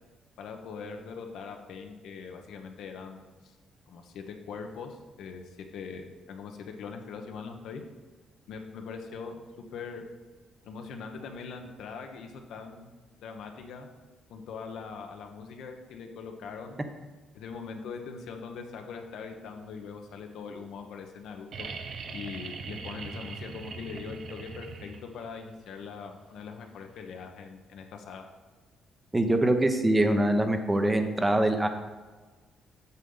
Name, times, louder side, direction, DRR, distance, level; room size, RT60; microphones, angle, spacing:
voice 1, 0.4-3.5 3.9-7.8 8.5-9.3 9.7-10.0 10.6-12.9 13.2-13.9 14.3-16.8 17.3-21.7 22.1-28.3, left 5 dB, 80° left, 4 dB, 1.0 m, -41 dB
sound 1, 21.5-25.3 27.0-27.1, right 5 dB, 60° right, 0.7 m, -41 dB
voice 2, 29.1-31.7, right 1 dB, 15° right, 6 dB, 0.9 m, -24 dB
8.1 x 6.8 x 3.9 m, 1.3 s
cardioid pair, 90°, 0 cm